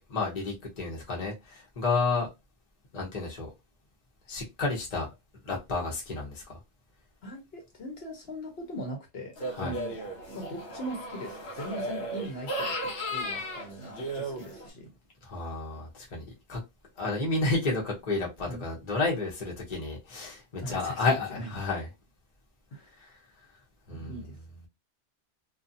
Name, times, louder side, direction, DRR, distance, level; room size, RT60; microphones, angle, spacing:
voice 1, 0.1-2.3 2.9-3.5 4.3-5.1 5.4-6.6 9.6-9.7 15.3-16.2 16.5-16.6 17.0-21.9 23.0-23.1 23.9-24.2, left 3 dB, 40° left, 0.9 m, -31 dB
voice 2, 7.2-10.0 10.3-14.9 18.4-18.6 20.6-21.5 22.7-22.9 23.9-24.4, equal, 65° left, 1.1 m, -40 dB
sound 1, 9.4-14.7, equal, 80° left, 1.1 m, -35 dB
2.5 x 2.4 x 2.6 m
omnidirectional pair, 1.2 m